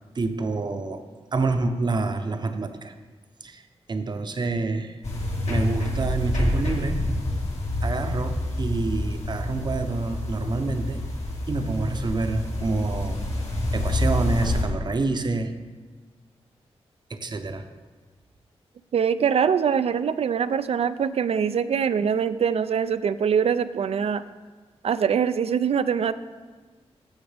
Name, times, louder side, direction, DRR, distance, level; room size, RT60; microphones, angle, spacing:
voice 1, 0.1-1.0 1.3-2.9 3.4-3.6 3.9-5.0 5.5-7.0 7.8-11.0 11.5-13.2 13.7-15.6 17.1-17.6, right 3 dB, 40° right, 8 dB, 0.7 m, -27 dB
sound 1, 5.0-14.6, left 1 dB, 80° left, 2.0 m, -27 dB
voice 2, 18.9-24.2 24.8-26.1, right 7 dB, 65° right, 14 dB, 0.4 m, -23 dB
14.5 x 6.1 x 3.4 m, 1.4 s
cardioid pair, 75°, 11 cm